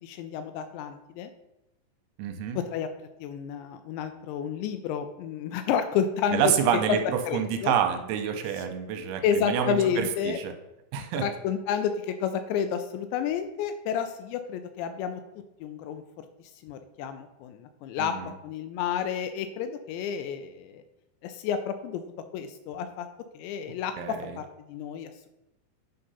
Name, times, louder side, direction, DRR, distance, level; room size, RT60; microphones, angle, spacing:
voice 1, 0.0-1.3 2.6-2.9 3.2-6.5 6.9-7.0 7.3-7.7 9.2-10.4 11.2-15.2 15.6-16.3 16.6-18.2 18.4-20.8 21.2-22.0 22.3-23.1 23.3-25.1, left 7 dB, 85° left, 9 dB, 2.6 m, -30 dB
voice 2, 2.2-2.6 6.3-7.0 7.3-10.5 10.9-11.2 18.0-18.3 24.0-24.4, right 8 dB, 80° right, 6 dB, 3.0 m, -28 dB
10.0 x 3.8 x 5.4 m, 0.92 s
omnidirectional pair, 5.4 m